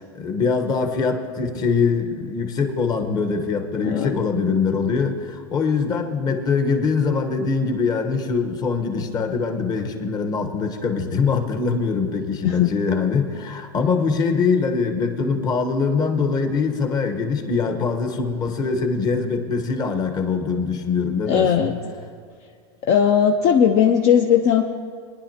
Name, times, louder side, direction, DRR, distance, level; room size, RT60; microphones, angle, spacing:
voice 1, 0.1-21.8, left 5 dB, 30° left, 5 dB, 1.1 m, -23 dB
voice 2, 3.8-4.2 12.4-12.7 21.3-21.7 22.8-24.6, left 8 dB, 45° left, 4 dB, 0.7 m, -18 dB
22.5 x 10.5 x 2.9 m, 2.1 s
supercardioid pair, 140°, 14 cm